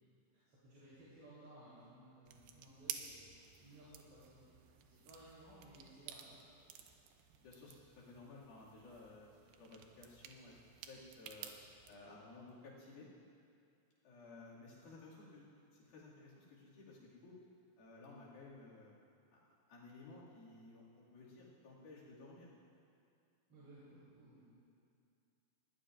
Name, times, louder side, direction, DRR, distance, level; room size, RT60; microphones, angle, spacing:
voice 1, 0.5-4.5 4.8-6.4 23.5-24.4, right 1 dB, 40° right, -12 dB, 4.3 m, -59 dB
sound 1, 2.3-11.9, right 9 dB, 80° right, 2.4 m, -53 dB
voice 2, 7.4-11.5 11.9-13.1 14.0-15.4 15.7-17.4 17.8-18.9 19.3-22.5, left 3 dB, 80° left, -7 dB, 4.2 m, -56 dB
20.0 x 15.0 x 2.5 m, 2.5 s
omnidirectional pair, 4.2 m